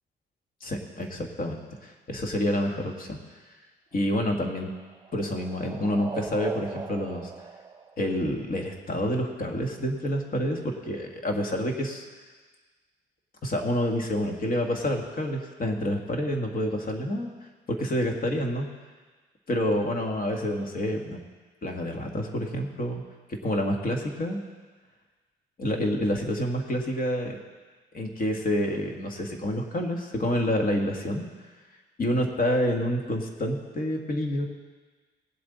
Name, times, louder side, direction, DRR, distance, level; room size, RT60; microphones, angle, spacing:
voice 1, 0.6-3.2 3.9-4.7 5.1-7.3 8.0-12.1 13.4-17.3 17.7-18.7 19.5-21.2 21.6-23.0 23.4-24.4 25.6-27.4 27.9-31.3 32.0-34.5, left 1 dB, 45° left, 2 dB, 1.9 m, -28 dB
sound 1, 3.9-8.7, right 5 dB, 20° right, 0.9 m, -41 dB
18.5 x 7.9 x 4.1 m, 1.4 s
cardioid pair, 90°, 20 cm